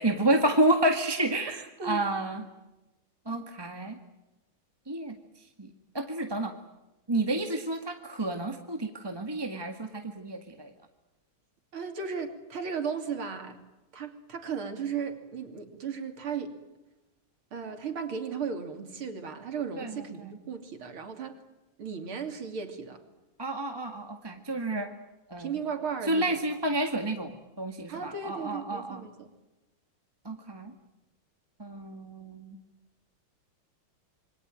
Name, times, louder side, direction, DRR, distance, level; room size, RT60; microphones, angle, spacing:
voice 1, 0.0-2.5 3.2-4.0 4.9-5.2 5.6-5.7 5.9-6.5 7.1-10.7 19.8-20.0 23.4-24.9 25.3-25.5 26.0-29.0 30.2-30.7 31.6-32.6, right 1 dB, 10° right, 5 dB, 1.7 m, -30 dB
voice 2, 11.7-13.6 13.9-16.5 17.5-21.4 21.8-23.0 25.4-26.4 26.7-26.8 27.9-29.3, right 6 dB, 75° right, 6 dB, 3.7 m, -35 dB
27.5 x 23.5 x 9.0 m, 1.0 s
omnidirectional pair, 2.3 m